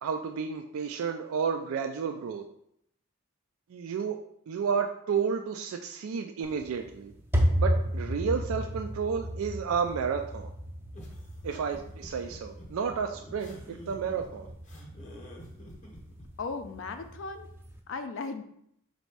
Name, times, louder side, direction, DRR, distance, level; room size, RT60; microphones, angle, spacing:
voice 1, 0.0-2.4 3.7-4.2 4.5-7.1 7.6-10.5 11.4-14.5, right 6 dB, 75° right, 5 dB, 0.3 m, -31 dB
sound 1, 6.4-17.8, equal, 10° right, 0.4 m, -34 dB
sound 2, 10.9-16.3, equal, 35° left, 0.7 m, -49 dB
voice 2, 16.4-17.5 17.9-18.4, left 4 dB, 60° left, 7 dB, 0.4 m, -36 dB
4.1 x 2.7 x 4.6 m, 0.71 s
head